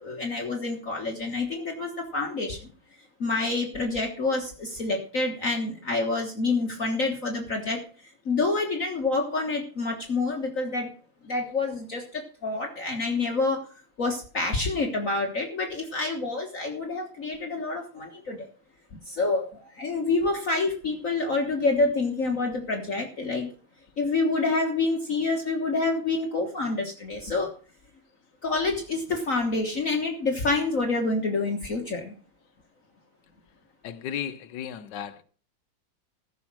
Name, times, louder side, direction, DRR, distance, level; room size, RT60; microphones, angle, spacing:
voice 1, 0.0-2.7 3.2-10.9 11.2-13.7 14.0-18.5 19.0-23.5 24.0-27.5 28.4-32.1, left 3 dB, 45° left, 1.7 m, -27 dB
voice 2, 33.8-35.2, left 9 dB, 70° left, 1.5 m, -35 dB
15.0 x 6.3 x 6.1 m
omnidirectional pair, 2.1 m